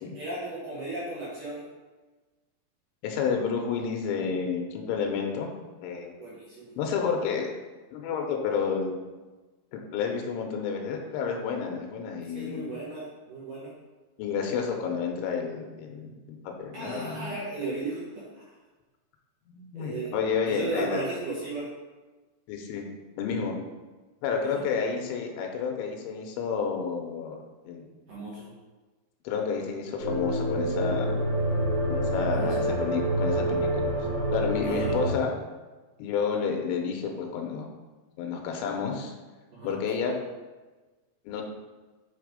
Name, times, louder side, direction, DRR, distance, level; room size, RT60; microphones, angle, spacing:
voice 1, 0.2-1.6 6.2-6.7 12.2-13.7 16.7-18.4 19.7-20.1 20.5-21.7 24.5-24.6 28.1-28.5 32.3-32.6 34.6-35.0 39.5-39.8, right 2 dB, 65° right, -7 dB, 2.2 m, -35 dB
voice 2, 3.0-5.5 5.8-6.1 6.8-7.5 7.9-9.0 9.7-12.7 14.2-17.4 19.5-21.0 22.5-22.9 23.2-23.6 24.2-27.4 27.7-27.9 29.2-31.2 31.8-33.9 34.3-35.3 36.0-37.7 38.2-39.1 39.6-40.2 41.3-41.5, left 6 dB, 90° left, 2 dB, 3.2 m, -30 dB
sound 1, 30.0-35.1, right 1 dB, 30° right, 1.0 m, -27 dB
8.2 x 3.4 x 5.1 m, 1.3 s
omnidirectional pair, 5.3 m